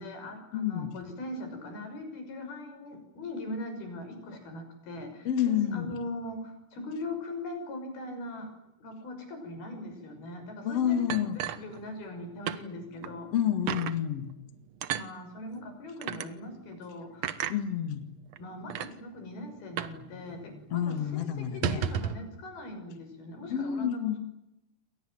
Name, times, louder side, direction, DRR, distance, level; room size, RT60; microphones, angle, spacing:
voice 1, 0.0-8.5 8.8-13.3 14.9-17.6 18.4-24.2, left 1 dB, 65° left, 7 dB, 8.0 m, -41 dB
voice 2, 0.5-0.9 5.2-5.9 10.6-11.4 13.3-14.3 17.5-18.1 20.7-21.8 23.5-24.2, left 9 dB, 45° left, 8 dB, 2.5 m, -29 dB
sound 1, 11.1-12.2 12.5-12.6 13.0-13.1 13.7-14.0 14.8-15.1 16.0-16.3 17.2-17.6 18.3-18.4 18.7-18.9 19.8-20.0 20.3-20.4 20.7-20.9 21.5-22.2, right 9 dB, 85° right, 1.4 m, -32 dB
29.0 x 25.0 x 7.8 m, 0.88 s
omnidirectional pair, 4.8 m